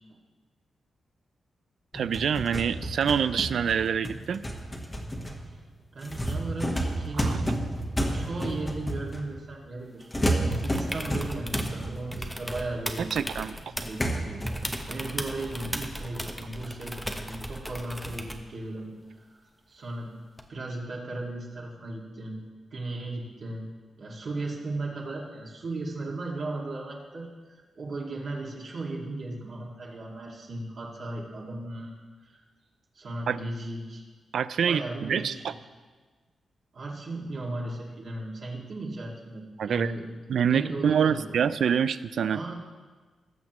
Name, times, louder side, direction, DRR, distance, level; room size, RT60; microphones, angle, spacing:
sound 1, 1.9-9.5 10.1-13.1 13.4-13.5 14.0-16.9 17.3-17.4 18.0-18.3, right 1 dB, 15° left, 1.3 m, -32 dB
voice 1, 1.9-4.4 7.2-7.4 13.0-13.6 33.3-33.4 34.3-35.5 39.6-39.9 40.3-42.4, right 7 dB, 75° right, 14 dB, 0.4 m, -26 dB
voice 2, 5.9-7.4 8.0-17.0 17.2-20.2 20.5-22.4 22.7-31.9 32.3-32.4 32.9-34.0 34.7-35.5 36.7-40.1 40.5-41.4 42.3-42.5, right 2 dB, 55° right, -3 dB, 2.2 m, -36 dB
sound 2, 10.5-11.8 12.1-14.1 14.5-18.5 20.4-20.5, equal, ahead, 0.8 m, -37 dB
19.0 x 7.3 x 3.1 m, 1.4 s
wide cardioid pair, 115°, 0 cm